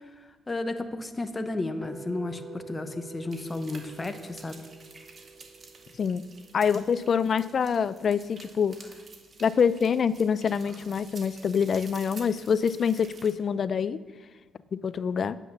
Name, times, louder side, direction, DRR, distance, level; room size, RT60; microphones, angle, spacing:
voice 1, 0.5-4.6, left 2 dB, 20° left, 8 dB, 1.0 m, -33 dB
sound 1, 1.8-7.9, right 4 dB, 25° right, 0.7 m, -48 dB
sound 2, 3.3-13.3, right 4 dB, 45° right, 1.8 m, -50 dB
voice 2, 6.5-8.8 9.4-14.0 14.7-15.4, left 6 dB, 50° left, 16 dB, 0.5 m, -25 dB
9.1 x 9.0 x 7.1 m, 1.4 s
cardioid pair, 90°, 0 cm